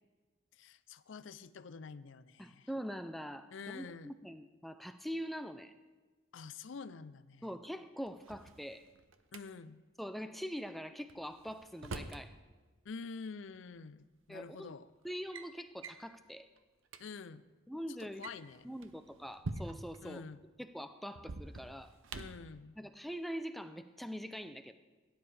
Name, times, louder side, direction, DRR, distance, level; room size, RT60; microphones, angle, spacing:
voice 1, 0.5-2.7 3.5-4.1 6.3-7.5 9.3-9.8 12.8-14.9 17.0-17.4 17.9-18.7 20.0-20.4 22.1-22.8, left 5 dB, 75° left, 15 dB, 0.5 m, -47 dB
voice 2, 2.4-5.7 7.4-8.8 10.0-12.3 14.3-14.7 15.0-16.5 17.7-18.3 18.6-20.2 20.6-21.9 22.8-24.7, equal, ahead, 9 dB, 0.4 m, -43 dB
Drawer open or close, 8.1-9.4 11.1-12.3 13.6-13.7 14.5-14.7 15.0-15.5 15.8-16.1 16.6-16.7 16.9-17.0 18.0-20.0 21.2-22.5, right 3 dB, 85° right, 0.7 m, -45 dB
17.0 x 10.5 x 3.4 m, 1.3 s
head